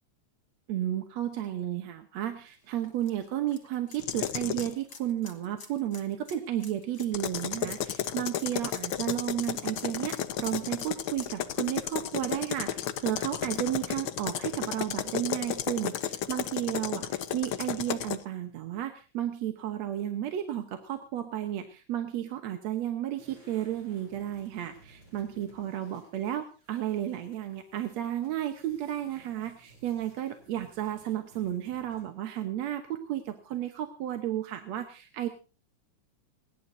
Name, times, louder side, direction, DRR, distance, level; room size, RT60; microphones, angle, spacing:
voice 1, 0.7-35.3, right 12 dB, 70° right, 7 dB, 2.2 m, -33 dB
sound 1, 2.5-13.2 13.6-13.7 15.2-15.3, left 5 dB, 45° left, 2.7 m, -51 dB
sound 2, 4.0-4.7 7.0-18.2, left 10 dB, 70° left, 1.2 m, -33 dB
sound 3, 23.1-32.2, right 2 dB, 35° right, 7.1 m, -58 dB
29.5 x 11.0 x 2.7 m, 0.34 s
omnidirectional pair, 3.4 m